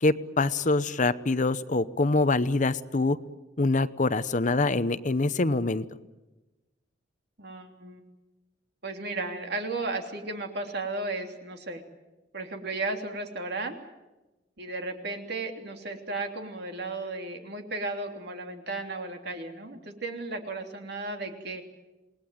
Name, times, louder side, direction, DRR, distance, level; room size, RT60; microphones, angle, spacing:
voice 1, 0.0-3.2 3.6-5.8, left 3 dB, 40° left, 14 dB, 0.8 m, -25 dB
voice 2, 7.4-8.0 8.8-11.8 12.3-13.8 14.6-21.6, right 2 dB, 60° right, 4 dB, 3.3 m, -34 dB
28.0 x 19.5 x 9.4 m, 1.1 s
head